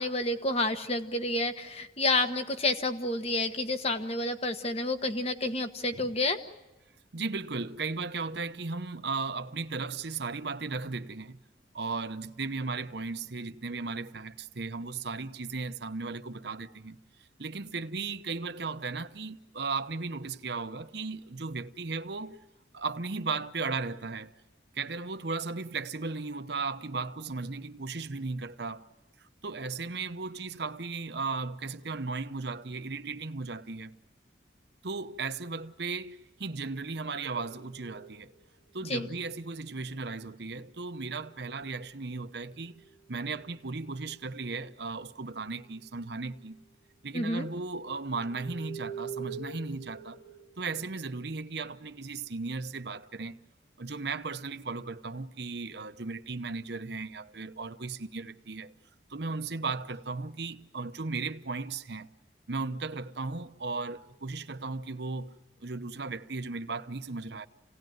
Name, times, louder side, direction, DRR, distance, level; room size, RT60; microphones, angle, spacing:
voice 1, 0.0-6.4 38.9-39.1 47.1-47.5, left 2 dB, 30° left, 1.2 m, -29 dB
voice 2, 7.1-11.4 11.7-17.0 17.4-22.4 22.7-24.3 24.7-28.8 29.2-33.9 34.8-38.3 38.7-42.8 43.1-46.6 47.0-50.2 50.6-53.3 53.8-58.7 59.1-62.1 62.5-65.3 65.6-67.5, right 4 dB, 60° right, 0.9 m, -36 dB
sound 1, 36.8-38.7 41.0-41.9 42.5-44.8 45.6-45.9 46.2-46.7 47.3-52.1, right 6 dB, 90° left, 1.4 m, -47 dB
28.0 x 18.0 x 9.4 m
head